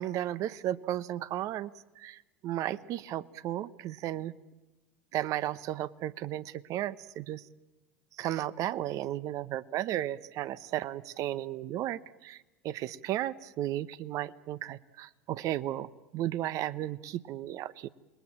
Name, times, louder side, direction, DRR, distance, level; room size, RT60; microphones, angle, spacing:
voice 1, 0.0-1.7 2.0-4.3 5.1-7.4 8.2-12.4 12.6-17.9, right 13 dB, 50° right, 15 dB, 1.0 m, -34 dB
28.5 x 21.0 x 7.4 m, 1.1 s
hypercardioid pair, 75°, 7 cm